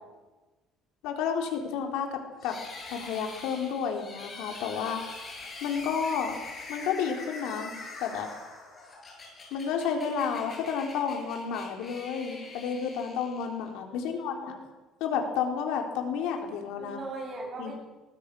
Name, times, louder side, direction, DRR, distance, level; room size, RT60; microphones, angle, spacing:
voice 1, 1.0-2.6 2.9-5.0 5.6-6.4 6.7-7.7 8.0-8.3 9.5-14.5 15.0-17.0 17.6-17.7, left 7 dB, 75° left, 3 dB, 4.0 m, -31 dB
sound 1, 2.4-13.7, left 3 dB, 20° left, 7.3 m, -44 dB
voice 2, 13.9-14.6 16.8-17.7, right 2 dB, 25° right, -1 dB, 7.6 m, -40 dB
24.0 x 20.0 x 6.4 m, 1.2 s
cardioid pair, 175°, 0 cm